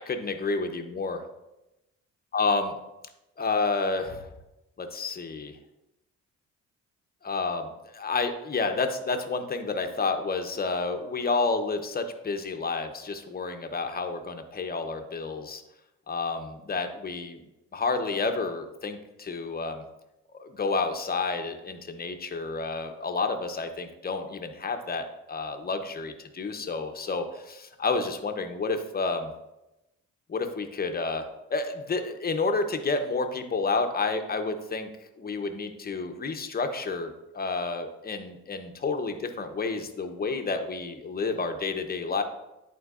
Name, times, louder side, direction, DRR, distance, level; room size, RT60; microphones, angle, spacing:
voice 1, 0.1-1.2 2.3-2.8 3.4-4.3 4.8-5.6 7.2-15.6 16.1-17.4 17.7-19.8 20.3-29.3 30.3-34.9 35.2-42.2, left 4 dB, 30° left, 6 dB, 0.9 m, -30 dB
11.0 x 4.5 x 2.5 m, 0.94 s
cardioid pair, 90°, 30 cm